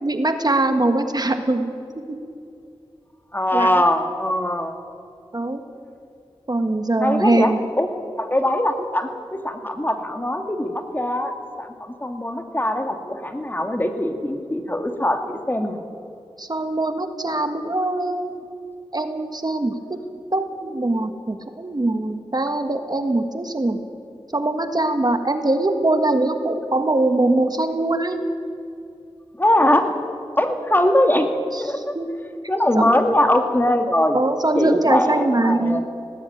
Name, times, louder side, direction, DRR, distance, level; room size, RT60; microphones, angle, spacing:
voice 1, 0.0-1.7 2.1-2.2 3.5-3.7 5.3-5.6 6.5-7.6 16.4-18.4 18.9-20.0 20.3-23.8 24.3-28.2 31.5-32.1 32.7-32.9 34.1-35.8, right 2 dB, 40° right, 7 dB, 1.6 m, -22 dB
voice 2, 3.3-4.7 7.0-7.9 8.1-9.1 9.4-11.3 11.6-15.8 29.4-29.9 30.4-31.3 31.6-32.0 32.5-34.2 34.6-35.8, left 1 dB, 20° left, 5 dB, 2.1 m, -21 dB
19.0 x 16.5 x 9.3 m, 2.6 s
wide cardioid pair, 65°, 10 cm